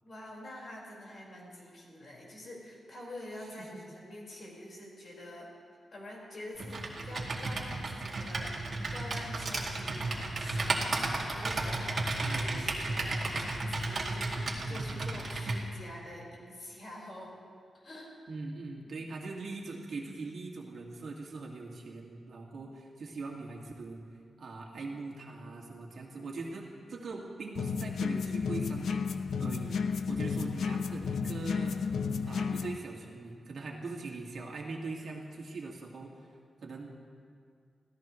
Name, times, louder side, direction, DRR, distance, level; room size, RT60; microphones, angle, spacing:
voice 1, 0.0-5.5 5.9-17.3 17.7-18.1 18.8-19.0, left 1 dB, 45° left, -3 dB, 4.7 m, -46 dB
Computer keyboard, 6.6-15.6, right 2 dB, 45° right, 2.2 m, -33 dB
voice 2, 12.2-12.8 14.7-15.2 18.3-24.0 24.4-29.8 30.1-31.8 32.2-36.1 36.6-36.9, right 3 dB, 60° right, -1 dB, 2.1 m, -42 dB
sound 1, 27.5-32.8, left 5 dB, 90° left, 0.7 m, -32 dB
26.0 x 16.0 x 3.2 m, 2.2 s
wide cardioid pair, 135°, 0 cm